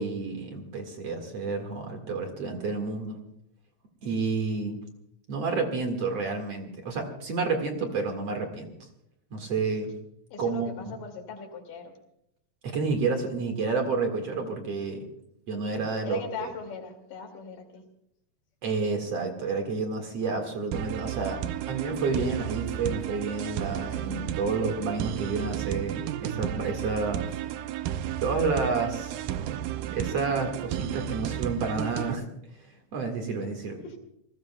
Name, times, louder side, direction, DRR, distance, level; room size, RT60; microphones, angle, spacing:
voice 1, 0.0-3.2 4.0-4.8 5.3-8.7 9.3-9.9 10.4-10.9 12.6-15.1 15.5-16.2 18.6-27.4 28.2-29.3 29.9-32.2 32.9-33.8, right 4 dB, 50° right, 3 dB, 2.6 m, -30 dB
voice 2, 10.3-11.9 16.1-17.8 33.8-34.0, left 6 dB, 70° left, 4 dB, 3.8 m, -39 dB
sound 1, 20.7-32.1, right 11 dB, 80° right, 2.2 m, -33 dB
28.0 x 19.5 x 2.2 m, 0.74 s
omnidirectional pair, 4.0 m